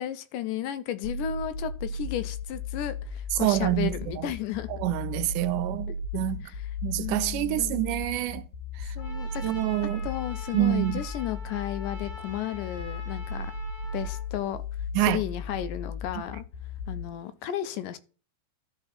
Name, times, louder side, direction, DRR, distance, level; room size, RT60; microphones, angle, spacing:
voice 1, 0.0-4.7 6.4-8.0 9.0-9.4 9.8-13.5 13.9-14.6 15.0-16.5 16.9-18.0, left 11 dB, 85° left, 2.2 m, -34 dB
sound 1, 1.0-17.0, left 3 dB, 70° left, 1.7 m, -36 dB
voice 2, 3.4-3.9 4.8-6.4 6.8-8.4 9.4-10.0 10.5-11.0 15.0-15.2, right 16 dB, 80° right, 2.0 m, -26 dB
Trumpet, 9.0-14.2, left 2 dB, 25° left, 0.5 m, -45 dB
12.5 x 4.4 x 4.1 m
omnidirectional pair, 3.8 m